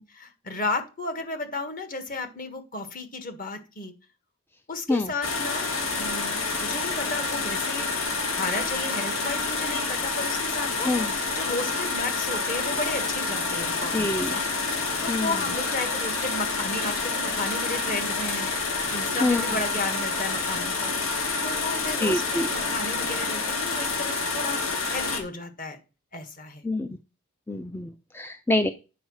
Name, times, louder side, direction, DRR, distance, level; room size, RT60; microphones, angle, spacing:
voice 1, 0.1-3.9 4.7-5.7 6.0-7.9 8.3-14.5 15.0-18.5 18.9-20.9 21.4-24.6 24.9-25.8 26.1-26.6, left 2 dB, 40° left, 7 dB, 1.6 m, -33 dB
sound 1, 5.2-25.2, left 4 dB, 85° left, 2.3 m, -28 dB
voice 2, 13.9-14.4 15.1-15.4 19.2-19.6 22.0-22.5 26.6-27.0 27.5-28.7, left 2 dB, 10° left, 9 dB, 0.4 m, -26 dB
9.3 x 4.8 x 6.3 m, 0.31 s
head